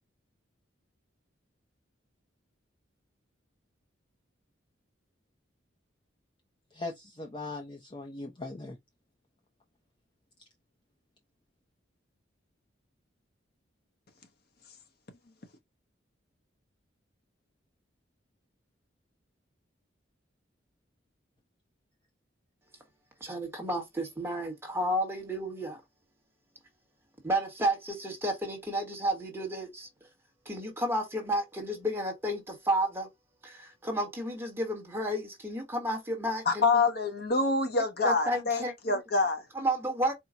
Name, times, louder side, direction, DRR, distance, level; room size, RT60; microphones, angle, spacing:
voice 1, 6.7-8.8, left 2 dB, 25° left, 0.6 m, -39 dB
voice 2, 23.2-25.8 27.2-29.9 30.5-33.1 33.4-36.7 38.0-38.7 39.5-40.1, right 1 dB, 10° right, 1.2 m, -31 dB
voice 3, 36.5-39.4, left 3 dB, 50° left, 0.9 m, -26 dB
4.5 x 2.2 x 3.7 m
head